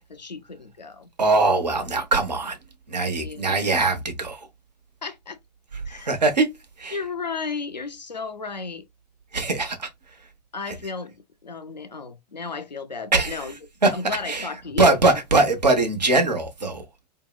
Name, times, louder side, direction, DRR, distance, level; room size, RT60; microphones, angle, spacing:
voice 1, 0.0-1.1 3.2-3.8 5.0-5.4 5.9-6.1 6.9-8.9 10.5-11.2 11.4-13.5 13.9-15.0, left 4 dB, 90° left, 0.5 m, -33 dB
voice 2, 1.2-2.6 2.9-4.5 5.9-6.5 6.8-7.0 9.3-10.2 10.7-10.8 13.1-13.5 13.8-14.5 14.8-17.1, right 3 dB, 85° right, 0.7 m, -22 dB
2.7 x 2.0 x 2.2 m
figure-of-eight pair, 95°, 21 cm